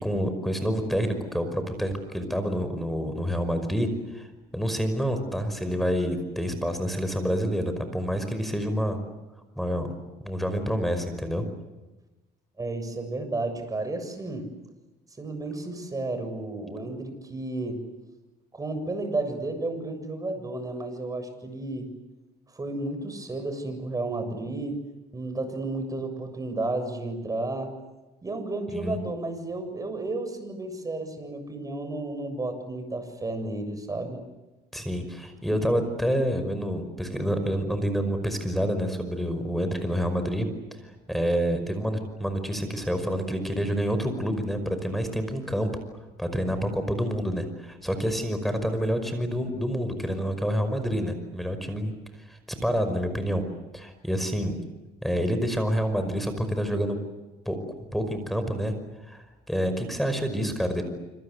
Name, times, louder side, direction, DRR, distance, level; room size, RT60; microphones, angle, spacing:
voice 1, 0.0-4.3 4.5-9.0 9.6-9.9 10.2-11.4 28.7-29.0 34.7-40.5 41.1-45.7 46.2-51.9 52.3-53.4 53.7-54.6 55.0-57.0 57.5-57.6 57.9-58.7 59.1-60.8, equal, ahead, 9 dB, 5.4 m, -28 dB
voice 2, 12.6-14.5 15.2-17.8 18.5-21.9 22.6-24.8 25.1-27.7 28.2-34.2, right 2 dB, 20° right, 8 dB, 7.2 m, -32 dB
27.0 x 26.5 x 8.2 m, 1.1 s
cardioid pair, 110°, 17 cm